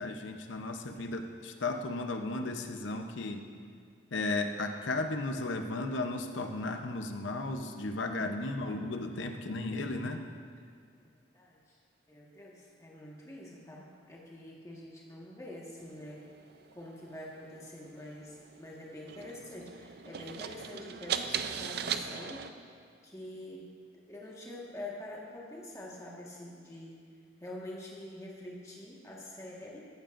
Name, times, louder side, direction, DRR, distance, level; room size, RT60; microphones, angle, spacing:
voice 1, 0.0-3.4 4.1-10.3, left 2 dB, 75° left, 6 dB, 0.8 m, -35 dB
voice 2, 8.2-8.8 11.3-11.6 12.1-16.3 16.7-22.4 23.0-23.7 24.0-27.0 27.4-29.9, left 1 dB, 15° left, -4 dB, 1.5 m, -46 dB
sound 1, 15.8-22.5, right 7 dB, 55° right, 0.4 m, -40 dB
14.5 x 12.0 x 2.6 m, 2.3 s
head